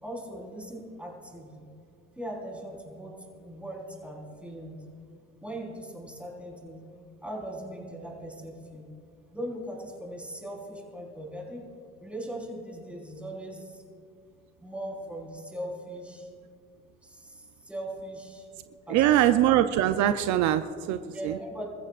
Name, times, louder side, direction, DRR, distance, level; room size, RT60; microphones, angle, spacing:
voice 1, 0.0-1.7 2.2-4.8 5.4-6.8 7.2-8.9 9.3-11.6 12.0-13.8 14.6-16.3 17.0-18.5 18.9-19.3 21.1-21.7, right 1 dB, 5° right, -2 dB, 4.3 m, -39 dB
voice 2, 18.9-21.4, right 12 dB, 75° right, 9 dB, 0.6 m, -23 dB
29.0 x 14.5 x 2.5 m, 2.3 s
cardioid pair, 100°, 29 cm